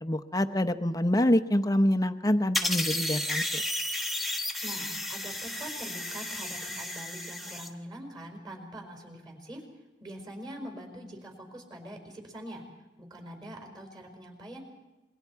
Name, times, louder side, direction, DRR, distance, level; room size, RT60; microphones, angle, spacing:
voice 1, 0.0-3.6, left 1 dB, 20° left, 9 dB, 0.8 m, -26 dB
sound 1, 2.5-7.7, left 1 dB, ahead, 1.2 m, -33 dB
voice 2, 4.6-9.6 10.0-12.6 13.0-14.6, right 1 dB, 25° right, 3 dB, 4.9 m, -43 dB
28.0 x 23.0 x 4.7 m, 1.1 s
head